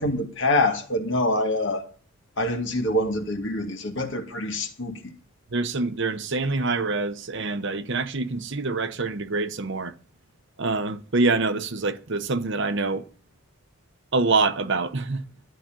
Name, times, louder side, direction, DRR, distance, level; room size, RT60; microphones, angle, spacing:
voice 1, 0.0-1.8 2.4-5.0, left 1 dB, 55° left, 2.1 m, -25 dB
voice 2, 5.5-9.9 10.6-13.0 14.1-15.2, right 3 dB, 55° right, 0.9 m, -25 dB
13.0 x 5.1 x 9.0 m
head